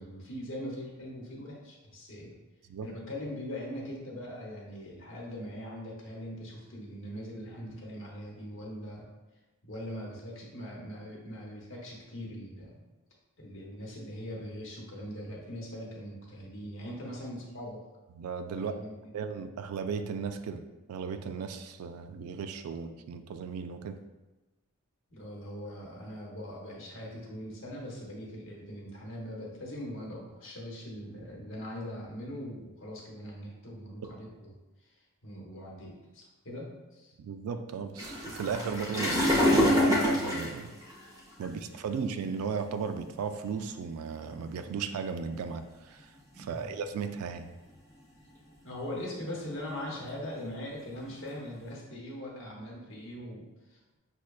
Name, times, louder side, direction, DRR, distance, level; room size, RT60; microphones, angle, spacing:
voice 1, 0.0-2.3 2.8-9.1 9.6-12.7 13.4-17.8 18.6-18.9 25.1-34.9 35.2-37.1 41.6-41.7 46.3-46.7 48.6-54.0, equal, 60° left, -3 dB, 0.9 m, -41 dB
voice 2, 18.2-18.7 19.1-20.6 20.9-24.0 37.2-40.7 41.4-46.1 46.4-47.5, right 6 dB, 80° right, 9 dB, 0.3 m, -36 dB
sound 1, 38.0-41.5 42.2-42.4 43.1-43.2 43.6-43.7 44.3-44.8 45.7-46.8 47.2-47.8 48.2-48.5 48.9-51.7, left 1 dB, 15° right, 0.6 m, -28 dB
5.9 x 2.2 x 2.3 m, 1.1 s
head